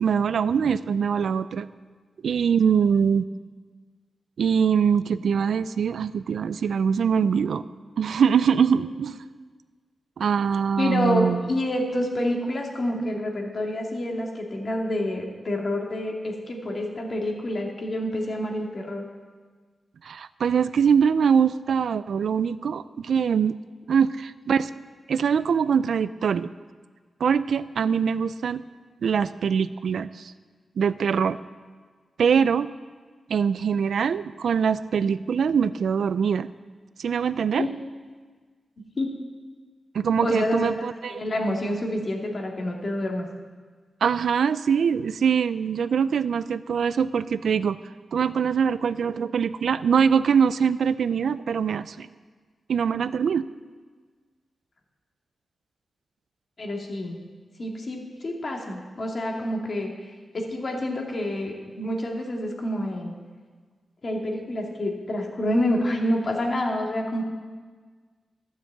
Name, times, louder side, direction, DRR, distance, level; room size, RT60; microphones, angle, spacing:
voice 1, 0.0-1.7 2.2-3.3 4.4-7.6 8.0-9.1 10.2-11.4 20.0-23.6 23.9-24.7 25.1-26.5 27.2-28.6 29.0-30.3 30.8-31.4 32.2-32.7 33.3-36.5 37.0-37.7 39.9-41.2 44.0-47.8 48.1-52.1 52.7-53.5, right 7 dB, 80° right, 16 dB, 0.4 m, -23 dB
voice 2, 10.8-19.0 37.5-37.7 39.0-39.1 40.2-40.7 41.1-43.3 56.6-57.2 57.6-59.9 60.3-63.1 64.0-67.2, left 1 dB, 55° left, 0 dB, 2.4 m, -28 dB
12.5 x 6.5 x 8.0 m, 1.5 s
cardioid pair, 60°, 0 cm